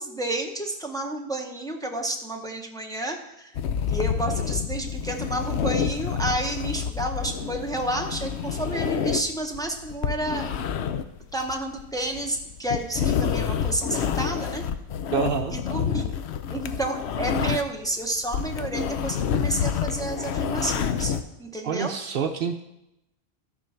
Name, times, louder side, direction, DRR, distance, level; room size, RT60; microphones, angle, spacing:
voice 1, 0.0-3.6 3.9-10.5 11.3-14.6 15.5-16.2 16.5-21.1 21.4-21.9, right 1 dB, 5° left, 2 dB, 0.9 m, -30 dB
sound 1, 3.5-17.9 18.2-21.2, left 7 dB, 75° left, 0.9 m, -28 dB
voice 2, 15.1-15.5 21.6-22.6, right 7 dB, 65° right, 7 dB, 0.7 m, -27 dB
13.5 x 4.6 x 5.7 m, 0.88 s
omnidirectional pair, 1.1 m